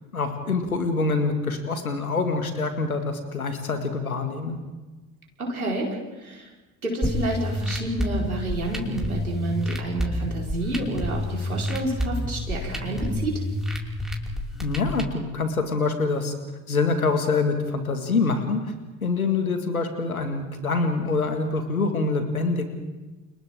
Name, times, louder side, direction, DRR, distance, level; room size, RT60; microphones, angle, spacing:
voice 1, 0.1-4.6 14.6-16.3 16.7-18.6 19.0-22.7, left 3 dB, 90° left, 6 dB, 2.1 m, -25 dB
voice 2, 5.4-6.5 6.8-13.4, right 2 dB, 90° right, -2 dB, 4.7 m, -29 dB
sound 1, 7.0-15.0, left 1 dB, ahead, 5.5 m, -29 dB
30.0 x 29.5 x 3.7 m, 1.2 s
figure-of-eight pair, 60°, 42 cm